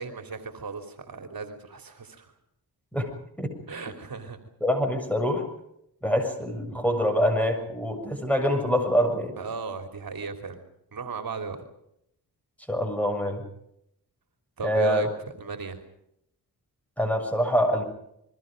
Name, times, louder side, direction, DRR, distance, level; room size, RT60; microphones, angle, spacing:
voice 1, 0.0-2.3 3.7-4.4 9.4-10.6 10.9-11.6 14.6-15.1 15.4-15.8, right 4 dB, 65° right, 6 dB, 3.1 m, -35 dB
voice 2, 4.6-5.4 6.0-9.4 12.7-13.4 14.6-15.1 17.0-17.8, equal, 5° left, 5 dB, 7.1 m, -25 dB
29.5 x 22.5 x 5.2 m, 0.77 s
wide cardioid pair, 85°, 38 cm